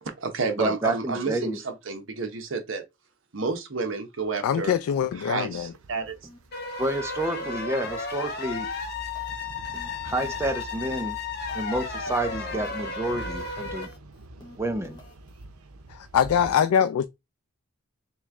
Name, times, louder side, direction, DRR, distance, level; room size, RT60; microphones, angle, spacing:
voice 1, 0.0-2.8 3.3-4.7 5.2-6.2, right 4 dB, 60° right, 0.9 m, -30 dB
voice 2, 0.6-1.6 6.8-8.7 10.0-11.2 11.5-13.9 14.6-15.0, right 1 dB, 10° right, 0.5 m, -29 dB
voice 3, 4.4-5.7 15.9-17.0, left 8 dB, 85° left, 0.3 m, -23 dB
sound 1, 5.5-16.5, right 1 dB, 90° right, 0.6 m, -45 dB
sound 2, 6.2-6.5 6.8-7.1 7.4-8.3 8.6-11.8 12.1-13.0 13.2-15.4, left 1 dB, 20° left, 1.1 m, -51 dB
sound 3, 6.5-13.9, left 4 dB, 50° left, 1.0 m, -34 dB
3.1 x 3.1 x 3.5 m
head